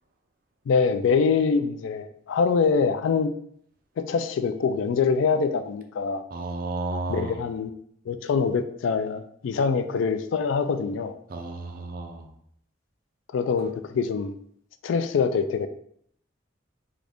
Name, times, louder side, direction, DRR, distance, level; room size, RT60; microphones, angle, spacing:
voice 1, 0.7-3.3 4.0-6.2 7.1-7.7 8.1-11.2 13.3-14.3 14.8-15.7, left 5 dB, 80° left, 10 dB, 0.3 m, -24 dB
voice 2, 6.3-7.4 11.3-12.3, right 2 dB, 50° right, 4 dB, 0.5 m, -32 dB
3.8 x 2.4 x 3.4 m, 0.67 s
head